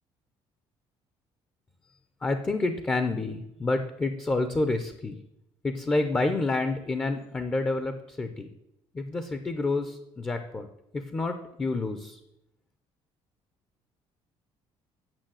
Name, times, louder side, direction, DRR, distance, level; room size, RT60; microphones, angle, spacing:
voice 1, 2.2-5.2 5.6-8.5 8.9-10.7 10.9-12.2, left 3 dB, 15° left, 8 dB, 0.6 m, -28 dB
9.0 x 6.6 x 7.6 m, 0.84 s
cardioid pair, 180°, 11 cm